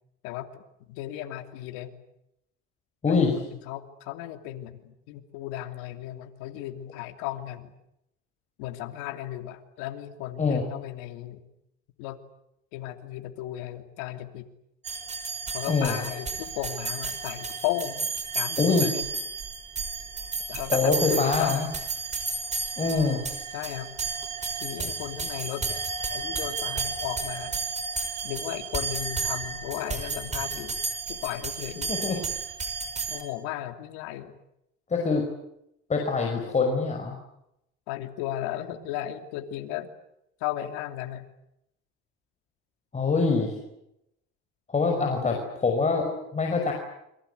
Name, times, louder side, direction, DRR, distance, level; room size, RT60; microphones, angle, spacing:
voice 1, 0.2-0.6 0.9-1.9 3.1-7.7 8.6-11.4 12.0-12.2 12.7-14.5 15.5-18.1 18.3-19.0 20.5-21.7 23.5-23.9 24.6-25.8 26.1-27.6 28.2-30.8 31.1-31.9 33.1-34.4 37.9-39.9 40.4-41.3 44.9-45.4, left 13 dB, 85° left, 6 dB, 3.0 m, -35 dB
voice 2, 3.0-3.3 10.4-10.6 15.7-16.0 18.6-18.9 20.7-21.7 22.8-23.2 31.9-32.2 34.9-35.2 35.9-37.2 42.9-43.5 44.7-46.7, left 4 dB, 25° left, 2 dB, 5.6 m, -24 dB
sound 1, 14.8-33.2, right 4 dB, 25° right, 5.5 m, -32 dB
28.5 x 24.0 x 8.2 m, 0.83 s
cardioid pair, 115°, 29 cm